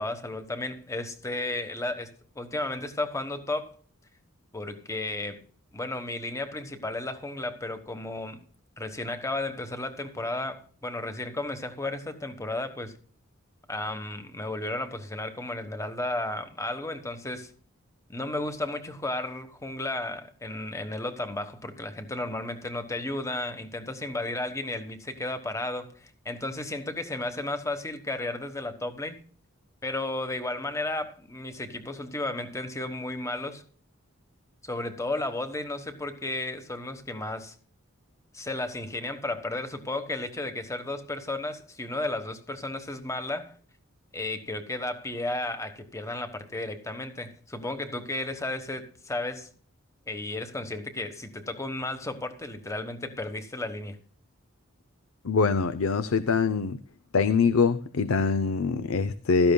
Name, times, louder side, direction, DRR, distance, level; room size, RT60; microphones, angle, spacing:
voice 1, 0.0-3.7 4.5-5.4 5.7-8.4 8.8-13.0 13.7-17.5 18.1-29.2 29.8-33.6 34.6-37.5 38.3-43.5 44.1-49.5 50.1-54.0, left 2 dB, 15° left, 1.2 m, -33 dB
voice 2, 55.2-56.8 57.1-59.5, left 5 dB, 80° left, 0.6 m, -24 dB
16.0 x 13.0 x 2.3 m
head